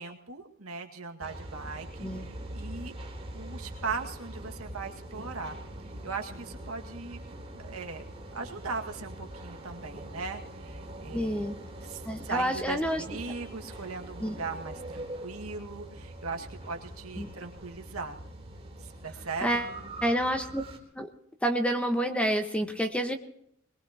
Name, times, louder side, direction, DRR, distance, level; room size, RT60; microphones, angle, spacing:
voice 1, 0.0-2.9 3.3-5.6 5.8-7.2 7.5-8.0 8.3-11.5 11.8-18.2 18.8-19.6, right 4 dB, 90° right, 3 dB, 2.0 m, -39 dB
sound 1, 1.2-20.8, right 1 dB, 25° right, 3.5 m, -43 dB
voice 2, 11.1-11.6 12.0-13.0 14.2-14.3 17.2-17.3 19.4-19.7 20.0-20.6 20.9-21.1 21.4-23.2, equal, 5° left, 6 dB, 1.4 m, -28 dB
21.5 x 21.5 x 3.0 m, 0.70 s
head